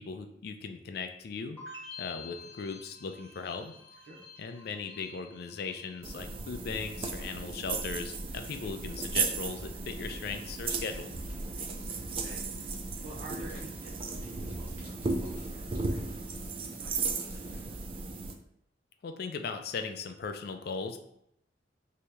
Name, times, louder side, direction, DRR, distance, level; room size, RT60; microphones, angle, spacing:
voice 1, 0.0-1.6 2.0-3.7 4.4-11.2 19.0-21.0, left 5 dB, 60° left, 7 dB, 0.3 m, -38 dB
sound 1, 1.6-6.6 6.9-7.5, left 4 dB, 5° left, 1.0 m, -49 dB
sound 2, 6.0-18.3, right 4 dB, 30° right, 0.3 m, -35 dB
sound 3, 8.3-17.7, equal, 10° right, 0.8 m, -56 dB
voice 2, 11.5-11.9 12.2-12.4 13.0-18.1, right 1 dB, 75° right, -4 dB, 0.6 m, -50 dB
3.0 x 2.8 x 3.3 m, 0.75 s
head